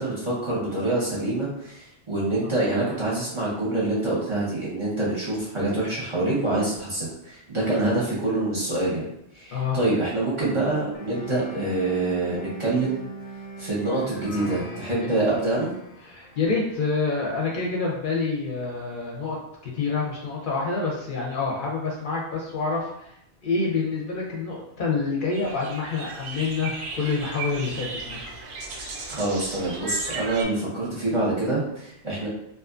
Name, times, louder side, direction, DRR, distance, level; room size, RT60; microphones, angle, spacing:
voice 1, 0.0-9.1 9.3-13.0 13.6-15.7 29.1-32.3, right 2 dB, 35° right, -8 dB, 0.7 m, -26 dB
voice 2, 9.5-9.8 16.1-19.4 19.6-23.1 23.4-28.2, left 4 dB, 60° left, -3 dB, 0.7 m, -27 dB
sound 1, 10.9-16.9, right 1 dB, 80° left, 0.9 m, -41 dB
sound 2, 25.3-30.4, right 3 dB, 90° right, 0.9 m, -36 dB
2.5 x 2.3 x 2.4 m, 0.77 s
omnidirectional pair, 1.1 m